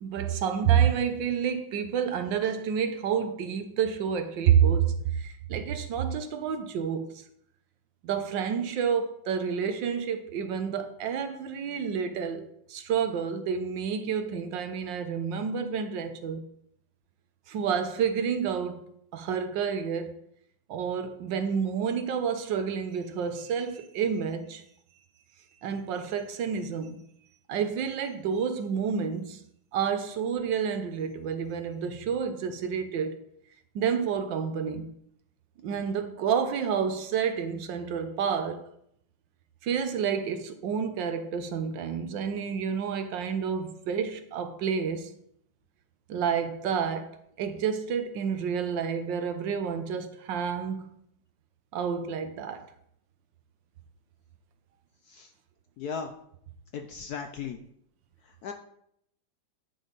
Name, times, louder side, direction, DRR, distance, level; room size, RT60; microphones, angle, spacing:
voice 1, 0.0-7.2 8.0-16.4 17.5-18.9 19.1-20.1 20.7-24.6 25.6-27.0 27.5-29.4 29.7-33.2 33.7-34.9 35.6-38.6 39.6-45.1 46.1-47.1 47.4-50.9 51.7-52.6, right 7 dB, 70° right, 1.4 m, -29 dB
voice 2, 55.8-56.1 56.7-57.6 58.4-58.5, left 6 dB, 70° left, 0.9 m, -36 dB
10.5 x 5.3 x 4.0 m
omnidirectional pair, 2.1 m